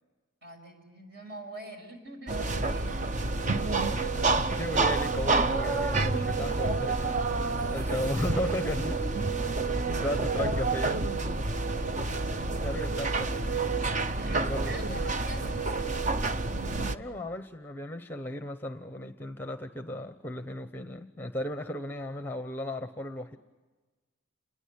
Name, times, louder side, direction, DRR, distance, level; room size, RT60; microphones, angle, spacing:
voice 1, 0.4-3.0 7.4-8.0 12.6-12.9 14.1-16.1, right 1 dB, 50° right, 4 dB, 6.3 m, -45 dB
sound 1, 2.3-17.0, right 3 dB, 35° right, 0.8 m, -29 dB
voice 2, 4.4-7.2 7.5-9.0 10.0-11.0 12.4-13.5 14.3-14.9 16.9-23.4, left 1 dB, 10° left, 9 dB, 0.9 m, -35 dB
29.5 x 21.0 x 8.7 m, 1.3 s
head